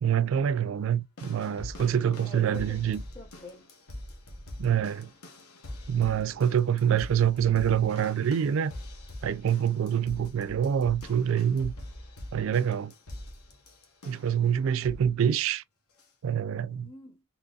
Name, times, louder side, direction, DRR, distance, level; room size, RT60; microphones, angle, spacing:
voice 1, 0.0-3.0 4.6-5.1 5.9-8.7 9.2-11.7 12.3-12.9 14.1-15.6 16.2-16.9, right 8 dB, 65° right, 0.3 m, -26 dB
sound 1, 1.2-14.4 14.8-15.2 16.0-16.1, left 1 dB, 90° left, 1.1 m, -44 dB
voice 2, 2.2-3.7 16.7-17.2, left 2 dB, 25° left, 0.6 m, -47 dB
3.9 x 3.0 x 2.3 m
head